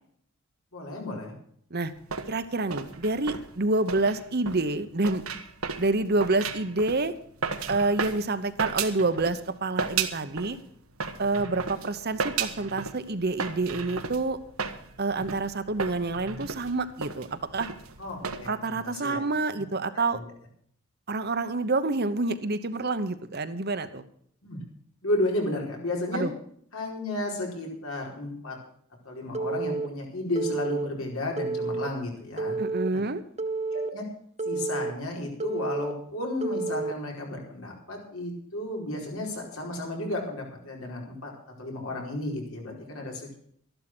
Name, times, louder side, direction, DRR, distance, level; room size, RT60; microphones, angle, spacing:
voice 1, 0.7-1.3 18.0-19.2 19.6-19.7 19.9-20.2 24.4-24.6 25.0-26.3 26.7-28.6 29.0-32.6 32.9-33.0 33.7-34.1 34.4-43.4, left 1 dB, 75° left, 0 dB, 4.7 m, -33 dB
sound 1, 1.8-9.5 9.8-10.6 10.9-18.5, right 5 dB, 80° right, 1.4 m, -34 dB
voice 2, 2.3-5.2 5.8-7.1 7.7-10.6 11.2-14.4 15.0-17.7 18.5-20.2 21.1-24.0 26.1-26.3 32.6-33.2, right 3 dB, 50° right, 11 dB, 1.0 m, -28 dB
Telephone, 29.3-29.9 30.3-30.9 31.4-31.9 32.4-32.9 33.4-33.9 34.4-34.9 35.4-35.9 36.4-36.9, right 3 dB, 30° right, 0.7 m, -30 dB
13.5 x 11.5 x 6.2 m, 0.64 s
head